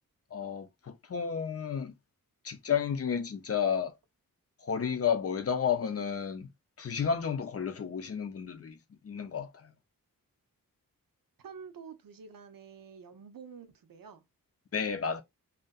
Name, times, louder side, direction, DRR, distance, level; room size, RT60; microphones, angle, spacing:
voice 1, 0.3-1.9 2.4-4.0 4.6-6.5 6.8-9.7 14.7-15.2, left 7 dB, 45° left, 0.5 m, -32 dB
voice 2, 11.4-14.2, right 6 dB, 75° right, 0.6 m, -48 dB
2.6 x 2.4 x 2.2 m
wide cardioid pair, 70°, 35 cm